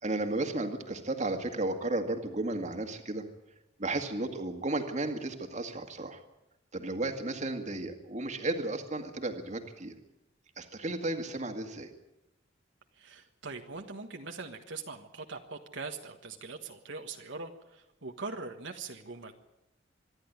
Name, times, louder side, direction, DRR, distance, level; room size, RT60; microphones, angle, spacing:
voice 1, 0.0-3.3 3.8-6.2 6.7-9.9 10.6-11.9, right 2 dB, 40° right, 5 dB, 2.1 m, -33 dB
voice 2, 13.0-19.3, right 4 dB, 70° right, 4 dB, 1.5 m, -42 dB
25.5 x 11.0 x 9.7 m, 0.92 s
head